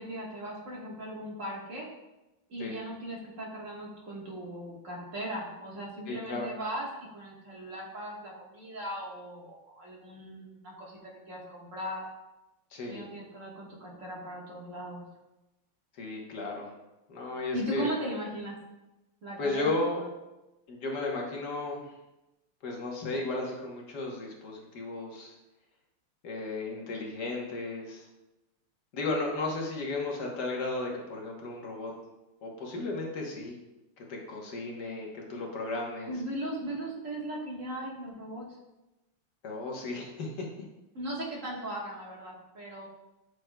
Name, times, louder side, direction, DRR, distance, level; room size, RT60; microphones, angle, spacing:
voice 1, 0.0-1.9 2.5-12.1 12.9-15.0 17.5-18.6 19.2-20.1 36.1-38.6 40.9-42.9, right 1 dB, 40° right, -3 dB, 1.6 m, -38 dB
voice 2, 6.1-6.5 12.7-13.1 16.0-16.7 17.1-17.9 19.4-20.0 20.7-21.8 22.6-25.3 26.2-28.0 28.9-31.9 32.4-33.6 34.0-36.1 39.4-40.5, left 2 dB, 55° left, -1 dB, 1.5 m, -34 dB
8.0 x 6.2 x 2.2 m, 0.98 s
omnidirectional pair, 2.4 m